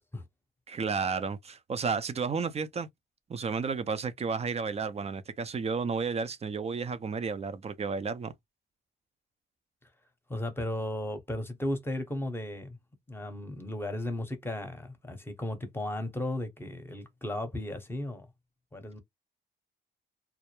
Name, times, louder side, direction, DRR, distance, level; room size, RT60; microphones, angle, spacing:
voice 1, 0.7-2.9 3.3-8.3, right 5 dB, 30° right, 0.5 m, -32 dB
voice 2, 10.3-12.8 13.1-18.3 18.7-19.0, left 1 dB, 10° left, 0.8 m, -35 dB
2.2 x 2.0 x 2.9 m
cardioid pair, 90°, 20 cm